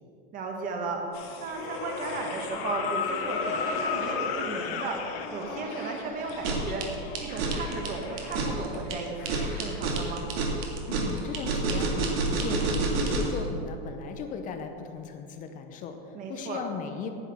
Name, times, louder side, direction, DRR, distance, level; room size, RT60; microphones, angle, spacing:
voice 1, 0.3-1.0 1.4-5.0 5.3-6.8 7.2-10.3 16.1-16.6, right 3 dB, 25° right, 2 dB, 1.5 m, -35 dB
sound 1, 0.9-1.0 2.1-5.3 7.0-7.1, left 6 dB, 80° left, 1.3 m, -32 dB
sound 2, 1.1-12.6 13.0-13.1, left 4 dB, 55° left, 2.4 m, -41 dB
sound 3, 6.3-13.4, right 3 dB, 75° right, 2.1 m, -28 dB
voice 2, 10.9-17.1, left 6 dB, 25° left, 6 dB, 0.6 m, -37 dB
10.0 x 8.9 x 6.2 m, 2.8 s
supercardioid pair, 160°, 30 cm